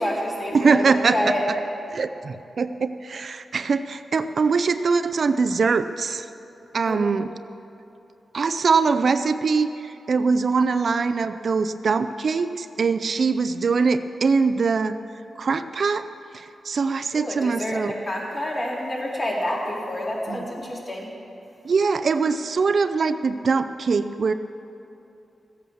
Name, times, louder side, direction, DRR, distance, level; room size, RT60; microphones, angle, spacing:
voice 1, 0.0-1.5 6.9-7.1 17.1-21.1, left 1 dB, 40° left, -5 dB, 3.8 m, -28 dB
voice 2, 0.5-1.4 1.9-6.3 6.7-7.3 8.3-15.0 15.4-16.1 16.3-17.9 20.3-20.5 21.6-24.3, right 4 dB, 60° right, 11 dB, 0.5 m, -22 dB
15.5 x 8.5 x 7.1 m, 2.8 s
cardioid pair, 65°, 0 cm